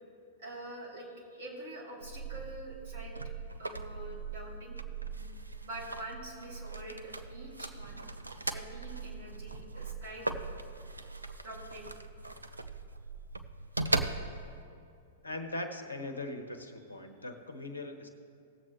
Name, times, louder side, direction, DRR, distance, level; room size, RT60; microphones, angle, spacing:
voice 1, 0.4-3.2 3.6-4.8 5.2-5.4 5.7-8.0 8.5-10.4 11.4-11.9, right 1 dB, 55° right, -3 dB, 2.8 m, -45 dB
sound 1, 2.0-14.6, right 3 dB, 80° right, 0.6 m, -39 dB
voice 2, 15.2-18.1, left 2 dB, 75° left, 7 dB, 1.1 m, -40 dB
18.5 x 7.5 x 3.2 m, 2.5 s
figure-of-eight pair, 100°, 0 cm